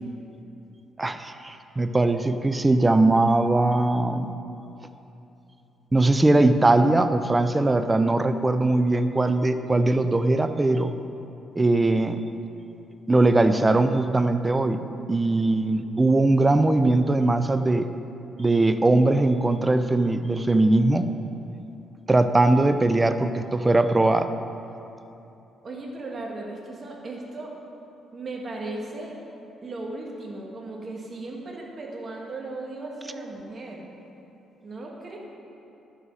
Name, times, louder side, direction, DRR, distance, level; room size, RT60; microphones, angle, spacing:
voice 1, 1.0-4.3 5.9-10.9 11.6-12.2 13.1-14.8 15.1-17.9 18.4-21.1 22.1-24.3, right 2 dB, 20° right, 10 dB, 0.5 m, -20 dB
voice 2, 25.6-27.5 28.1-29.2 29.6-33.8 34.6-35.2, right 2 dB, 40° right, -1 dB, 2.0 m, -36 dB
11.0 x 8.2 x 4.9 m, 2.9 s
cardioid pair, 90°, 0 cm